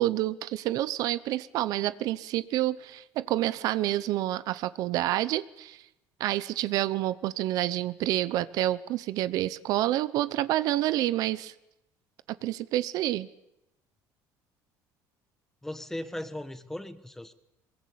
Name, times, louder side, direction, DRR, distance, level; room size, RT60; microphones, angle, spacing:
voice 1, 0.0-5.8 6.2-11.5 12.4-13.3, right 14 dB, 60° right, 16 dB, 0.9 m, -28 dB
voice 2, 15.6-17.3, left 1 dB, 5° left, 12 dB, 1.3 m, -37 dB
22.5 x 22.0 x 8.6 m, 0.87 s
cardioid pair, 150°, 7 cm